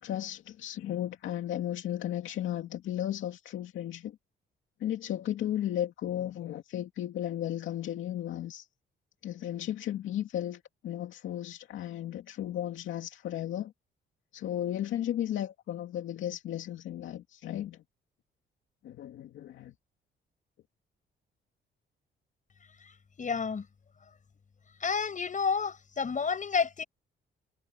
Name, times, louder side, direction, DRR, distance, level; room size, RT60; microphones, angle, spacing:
voice 1, 0.0-4.2 4.8-8.7 9.2-13.7 14.3-17.8 18.8-19.7, left 11 dB, 80° left, 2.5 m, -35 dB
voice 2, 23.2-23.7 24.8-26.8, left 5 dB, 40° left, 7.2 m, -30 dB
cardioid pair, 90°, 20 cm